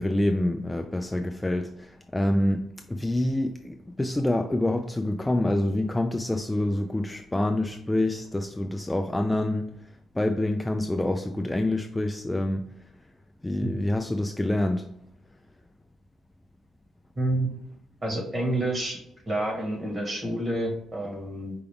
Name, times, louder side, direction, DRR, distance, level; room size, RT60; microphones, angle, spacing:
voice 1, 0.0-9.7 10.1-12.7 13.4-14.9, left 1 dB, 10° left, 4 dB, 0.3 m, -26 dB
voice 2, 17.1-17.5 18.0-19.0 19.3-21.5, right 1 dB, 25° right, 0 dB, 1.5 m, -28 dB
5.0 x 2.3 x 3.4 m, 0.72 s
cardioid pair, 90°, 0 cm